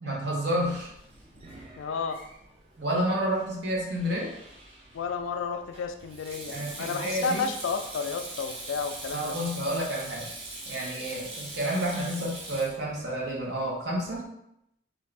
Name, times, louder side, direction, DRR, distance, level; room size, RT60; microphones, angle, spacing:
voice 1, 0.0-0.9 2.8-4.3 6.5-7.4 9.1-10.3 10.7-14.3, right 1 dB, 60° right, -4 dB, 0.9 m, -30 dB
Sink (filling or washing), 0.5-14.2, right 2 dB, 30° right, 0.5 m, -43 dB
voice 2, 1.8-2.2 4.9-9.3, left 5 dB, 85° left, 8 dB, 0.3 m, -32 dB
2.6 x 2.4 x 3.3 m, 0.79 s
head